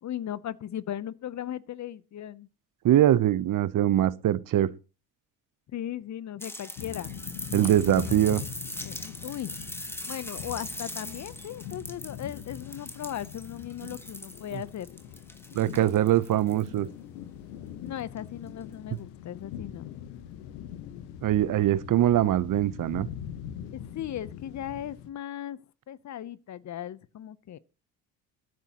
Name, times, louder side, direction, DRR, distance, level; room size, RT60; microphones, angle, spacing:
voice 1, 0.0-2.5 5.7-7.1 8.8-9.5 10.0-15.0 17.8-19.9 23.7-27.6, left 11 dB, 45° left, 0.8 m, -37 dB
voice 2, 2.8-4.7 7.5-8.4 15.5-16.9 21.2-23.1, right 12 dB, 50° right, 0.8 m, -23 dB
sound 1, 6.4-16.8 18.2-18.3, left 1 dB, 5° left, 1.5 m, -41 dB
sound 2, 6.8-25.1, left 9 dB, 80° left, 1.4 m, -42 dB
21.5 x 9.3 x 3.0 m
hypercardioid pair, 65°, 42 cm